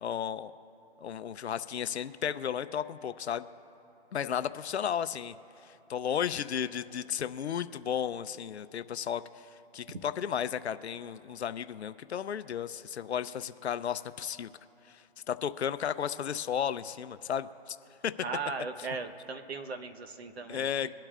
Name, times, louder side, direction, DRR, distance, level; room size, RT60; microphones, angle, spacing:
voice 1, 0.0-0.5 1.0-3.5 4.1-5.3 5.6-9.5 9.7-14.5 14.9-17.8 18.0-18.1 20.5-20.9, left 8 dB, 90° left, 12 dB, 0.6 m, -34 dB
voice 2, 18.2-20.7, right 4 dB, 75° right, 6 dB, 1.1 m, -37 dB
23.5 x 8.8 x 2.4 m, 2.9 s
hypercardioid pair, 165°, 32 cm